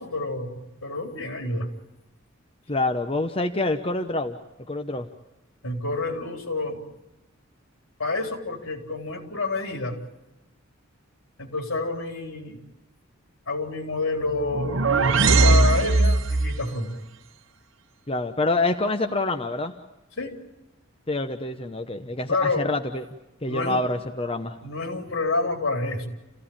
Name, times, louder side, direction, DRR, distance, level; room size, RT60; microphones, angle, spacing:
voice 1, 0.0-1.7 5.6-6.8 8.0-10.0 11.4-12.6 13.5-14.8 15.2-17.0 20.2-20.3 22.3-22.7 23.5-23.8 24.6-26.1, left 3 dB, 80° left, 4 dB, 4.0 m, -28 dB
voice 2, 2.7-4.4 4.7-5.1 18.1-19.7 21.1-23.0 23.4-24.6, left 2 dB, 25° left, 6 dB, 1.0 m, -26 dB
sound 1, 14.3-16.6, right 3 dB, 70° right, 1.0 m, -19 dB
29.0 x 16.5 x 8.8 m, 0.98 s
head